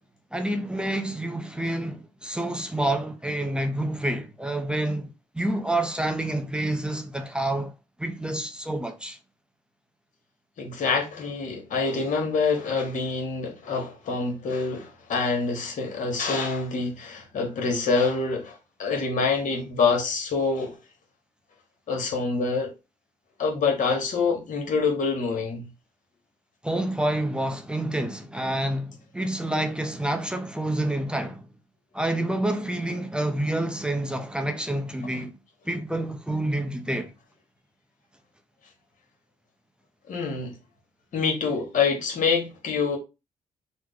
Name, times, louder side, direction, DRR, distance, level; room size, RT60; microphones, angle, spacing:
voice 1, 0.3-7.7 8.0-9.2 26.6-31.4 31.9-35.4 35.7-37.1, right 1 dB, 5° right, 0.5 m, -28 dB
voice 2, 10.6-20.7 21.9-22.7 23.4-25.7 40.1-40.5 41.1-43.0, left 4 dB, 65° left, 1.2 m, -26 dB
3.2 x 2.1 x 3.6 m
cardioid pair, 80°, 14 cm